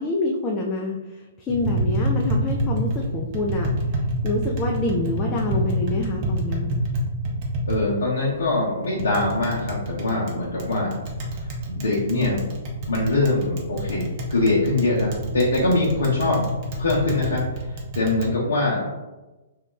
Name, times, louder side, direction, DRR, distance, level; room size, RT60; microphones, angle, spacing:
voice 1, 0.0-3.7 4.2-6.7, left 2 dB, 20° left, -1 dB, 0.3 m, -27 dB
Tap, 1.5-18.3, right 1 dB, 40° right, 0.6 m, -28 dB
voice 2, 7.7-10.9 11.7-12.4 12.9-14.0 14.3-16.4 16.8-17.4 17.9-18.9, left 2 dB, 65° left, -6 dB, 0.6 m, -23 dB
2.3 x 2.2 x 3.7 m, 1.1 s
figure-of-eight pair, 120°, 0 cm